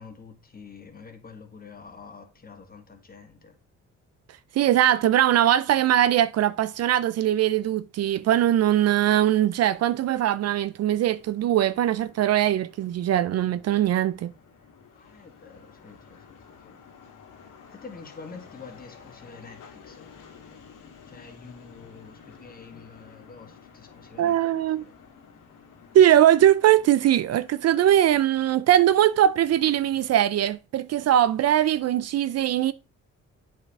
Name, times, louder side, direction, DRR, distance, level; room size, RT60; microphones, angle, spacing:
voice 1, 0.0-3.6 14.9-16.8 17.7-20.1 21.1-24.4 24.8-24.9, left 5 dB, 30° left, 1.9 m, -47 dB
voice 2, 4.5-14.3 24.2-24.8 25.9-32.7, right 11 dB, 55° right, 0.4 m, -21 dB
sound 1, 11.2-30.6, left 6 dB, 90° left, 1.9 m, -52 dB
8.2 x 5.1 x 3.5 m
cardioid pair, 90°, 30 cm